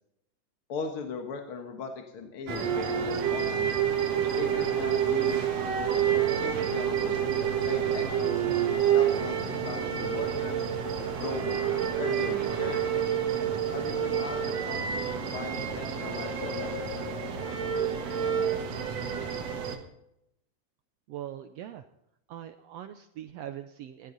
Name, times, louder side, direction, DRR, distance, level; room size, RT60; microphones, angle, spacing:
voice 1, 0.7-3.8 4.3-5.4 6.1-7.2 7.6-10.7 11.2-12.9 13.7-17.3, left 5 dB, 55° left, 3 dB, 1.9 m, -39 dB
sound 1, 2.5-19.8, right 8 dB, 60° right, 2.5 m, -28 dB
voice 2, 21.1-21.8 22.3-24.1, right 11 dB, 80° right, 9 dB, 1.4 m, -41 dB
17.0 x 13.0 x 4.0 m, 0.81 s
omnidirectional pair, 3.6 m